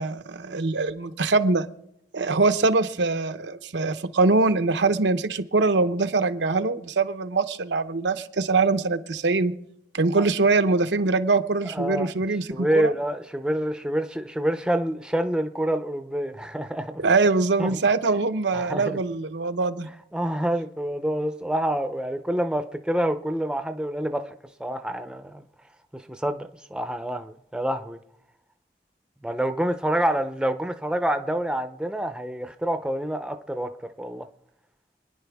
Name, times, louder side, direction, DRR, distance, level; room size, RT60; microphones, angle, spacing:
voice 1, 0.0-1.6 2.1-9.5 9.9-12.9 17.0-19.9, right 3 dB, 80° right, 0.8 m, -23 dB
voice 2, 11.7-12.1 12.5-17.0 17.6-17.8 18.5-19.0 20.1-24.3 24.6-25.4 25.9-28.0 29.2-33.7 34.0-34.3, right 1 dB, 5° right, 0.6 m, -27 dB
26.5 x 10.0 x 3.5 m
head